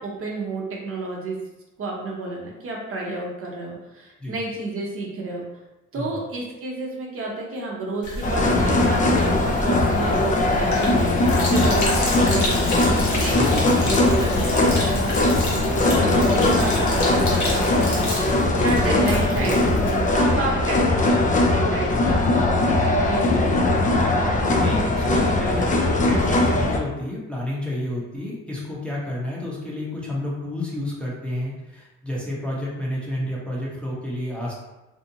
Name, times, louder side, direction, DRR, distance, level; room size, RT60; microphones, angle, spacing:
voice 1, 0.0-1.4 1.8-5.5 5.9-13.6 13.9-22.6 23.0-23.6, right 2 dB, 45° right, -2 dB, 0.7 m, -31 dB
sound 1, 7.8-18.0, left 4 dB, 90° left, 0.5 m, -39 dB
Sink (filling or washing), 8.0-20.4, left 1 dB, 70° left, 0.9 m, -30 dB
sound 2, 8.2-26.8, left 2 dB, 25° left, 0.4 m, -20 dB
voice 2, 24.6-34.5, left 1 dB, 5° left, -6 dB, 0.7 m, -30 dB
2.7 x 2.4 x 2.7 m, 1.0 s
cardioid pair, 90°, 30 cm